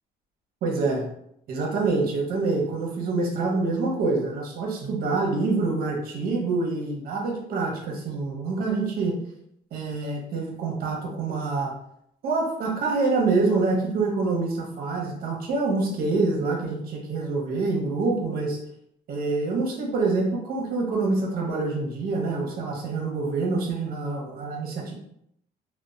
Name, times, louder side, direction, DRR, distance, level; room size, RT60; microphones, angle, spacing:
voice 1, 0.6-1.1 1.5-9.1 9.7-11.7 12.2-18.6 19.1-24.9, right 3 dB, 60° right, 0 dB, 0.8 m, -26 dB
2.8 x 2.1 x 2.4 m, 0.73 s
cardioid pair, 110°, 17 cm